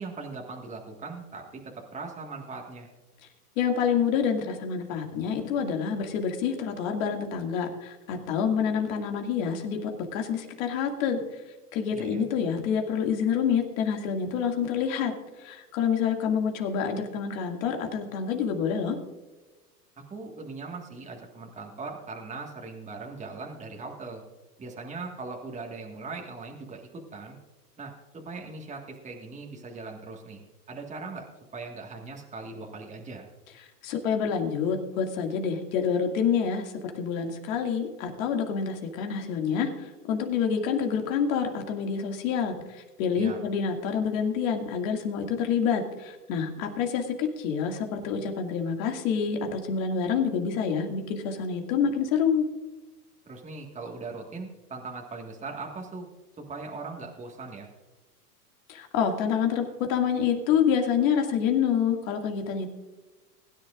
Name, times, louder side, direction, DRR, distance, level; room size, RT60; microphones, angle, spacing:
voice 1, 0.0-2.9 11.9-12.2 20.1-24.2 24.6-27.4 27.8-30.4 30.7-31.3 31.5-33.3 43.2-43.4 53.3-56.1 56.5-57.7, right 3 dB, 15° right, 0 dB, 1.7 m, -40 dB
voice 2, 3.6-11.2 11.7-15.1 15.4-19.0 33.8-52.4 58.7-62.7, left 7 dB, 60° left, 3 dB, 2.3 m, -27 dB
21.0 x 10.5 x 2.5 m, 1.2 s
hypercardioid pair, 105°, 46 cm